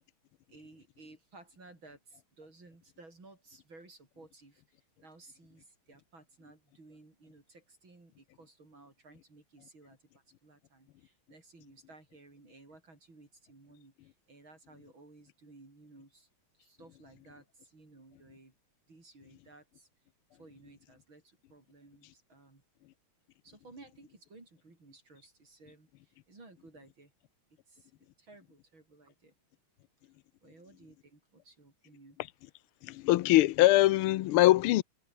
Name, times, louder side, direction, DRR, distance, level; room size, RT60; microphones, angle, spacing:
voice 1, 0.5-16.3 16.5-18.5 18.9-19.9 20.4-22.6 23.4-27.1 27.7-29.3 30.4-32.2, right 2 dB, 65° right, 6.8 m, -57 dB
voice 2, 32.8-34.8, left 16 dB, 85° left, 1.6 m, -23 dB
omnidirectional pair, 2.4 m